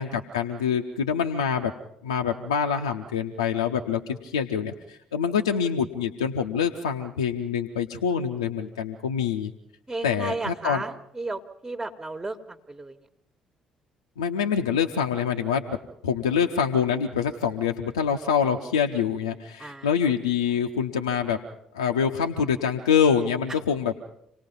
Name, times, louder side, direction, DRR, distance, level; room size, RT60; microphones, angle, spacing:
voice 1, 0.0-1.7 2.0-9.5 10.0-10.8 14.2-15.8 16.0-21.4 21.7-23.9, left 7 dB, 80° left, 4 dB, 0.7 m, -25 dB
voice 2, 9.9-10.9 11.1-12.4 12.7-12.9 19.6-19.9, right 2 dB, 15° right, 8 dB, 1.4 m, -33 dB
27.0 x 19.0 x 5.4 m, 0.77 s
figure-of-eight pair, 45°, 3 cm